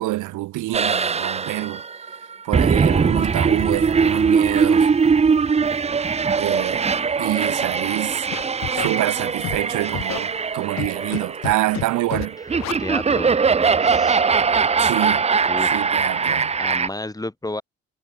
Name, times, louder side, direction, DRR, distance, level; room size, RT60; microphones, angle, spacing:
voice 1, 0.0-1.8 2.4-4.9 6.4-6.9 7.2-8.3 8.7-12.4 14.8-15.2 15.7-16.5, right 17 dB, 80° right, 0.7 m, -26 dB
sound 1, 0.7-16.9, right 5 dB, 20° right, 0.6 m, -21 dB
Scratching (performance technique), 8.3-8.9 9.4-9.6 9.9-10.2 10.8-11.2 11.4-11.8 12.1-12.3 12.6-12.7, left 14 dB, 65° left, 0.6 m, -28 dB
voice 2, 12.8-14.3 15.5-15.9 16.5-17.6, left 2 dB, 10° left, 2.7 m, -32 dB
cardioid pair, 90°, 30 cm